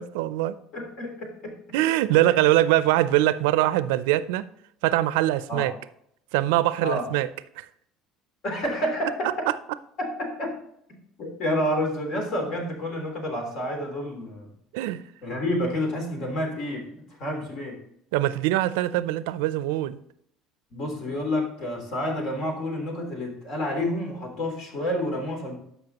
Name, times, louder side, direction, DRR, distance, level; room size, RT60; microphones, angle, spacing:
voice 1, 0.0-0.6 1.7-4.5 4.8-5.7 6.3-7.3 7.6-7.7 9.5-9.6 14.7-15.0 18.1-20.0, right 15 dB, 85° right, 16 dB, 0.4 m, -23 dB
voice 2, 0.7-1.5 5.5-5.7 6.8-7.1 8.4-9.3 10.0-10.6 11.2-14.5 15.2-16.9 17.2-17.8 20.7-25.6, left 1 dB, 60° left, 2 dB, 3.1 m, -29 dB
12.0 x 5.6 x 2.9 m, 0.71 s
supercardioid pair, 90°, 0 cm